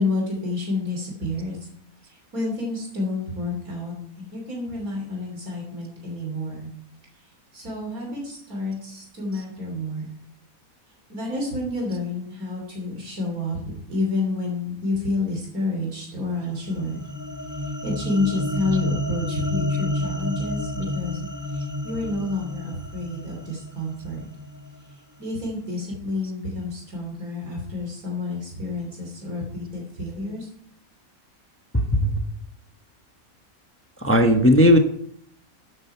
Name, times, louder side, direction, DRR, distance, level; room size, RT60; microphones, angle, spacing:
voice 1, 0.0-1.6 2.1-6.7 7.5-10.1 11.1-13.6 13.9-17.0 17.6-24.2 25.2-30.5, left 2 dB, 85° right, -1 dB, 3.6 m, -29 dB
sound 1, 16.5-25.0, left 1 dB, 15° right, 1.4 m, -30 dB
voice 2, 31.7-32.2 34.0-34.8, equal, 10° left, 4 dB, 1.0 m, -16 dB
13.0 x 9.8 x 4.6 m, 0.64 s
omnidirectional pair, 1.5 m